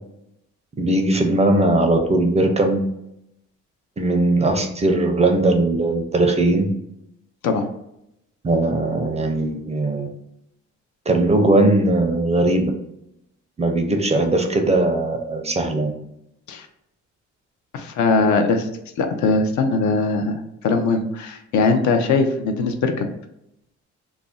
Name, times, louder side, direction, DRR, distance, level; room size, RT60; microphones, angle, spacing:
voice 1, 0.8-2.8 4.0-6.7 8.4-10.1 11.1-12.7 13.6-15.9, right 2 dB, 20° right, 5 dB, 0.4 m, -19 dB
voice 2, 17.7-18.7 19.0-23.1, left 3 dB, 70° left, 6 dB, 0.5 m, -20 dB
2.5 x 2.0 x 3.6 m, 0.81 s
cardioid pair, 90°, 30 cm